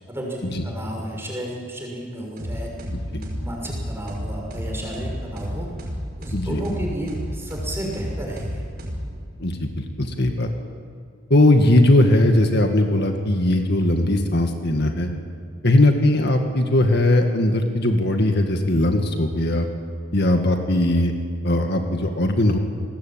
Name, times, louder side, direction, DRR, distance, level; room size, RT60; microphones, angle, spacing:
voice 1, 0.1-2.7 3.1-5.8 6.2-8.6, right 1 dB, 10° right, -1 dB, 6.2 m, -32 dB
sound 1, 2.4-9.5, equal, 45° right, 5.2 m, -32 dB
voice 2, 9.4-10.5 11.3-15.1 15.6-19.7 20.1-21.1 21.4-22.6, left 1 dB, 55° left, 4 dB, 2.0 m, -19 dB
28.0 x 20.0 x 8.9 m, 2.1 s
head